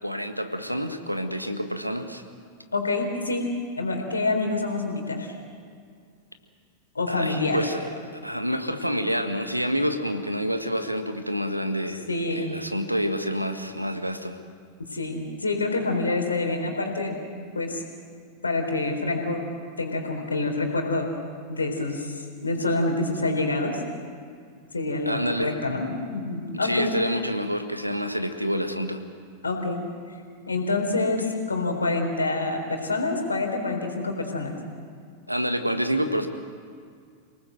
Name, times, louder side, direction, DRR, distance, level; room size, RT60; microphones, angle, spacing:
voice 1, 0.0-2.2 7.1-14.4 25.0-25.6 26.5-29.0 31.2-31.3 35.3-36.3, equal, 90° right, 8 dB, 1.6 m, -28 dB
voice 2, 2.7-3.5 3.8-5.3 6.9-7.6 12.1-12.6 14.9-17.2 17.5-17.8 18.4-19.5 19.8-21.1 21.5-23.8 24.7-26.9 29.4-29.8 30.5-34.6, left 2 dB, 80° left, 3 dB, 3.8 m, -27 dB
28.0 x 19.0 x 7.9 m, 2.2 s
figure-of-eight pair, 90°, 0 cm